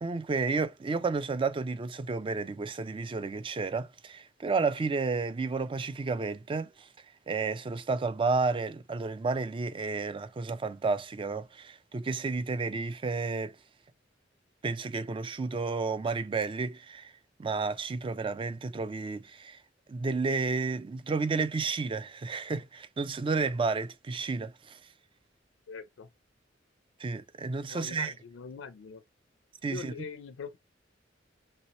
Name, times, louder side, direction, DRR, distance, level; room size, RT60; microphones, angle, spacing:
voice 1, 0.0-6.9 7.3-13.5 14.6-17.1 17.4-19.6 19.9-24.8 27.0-28.1 29.6-29.9, right 4 dB, 25° right, 0.4 m, -31 dB
voice 2, 25.7-26.1 27.7-29.0 29.7-30.6, left 5 dB, 75° left, 0.4 m, -42 dB
3.1 x 2.8 x 2.9 m
head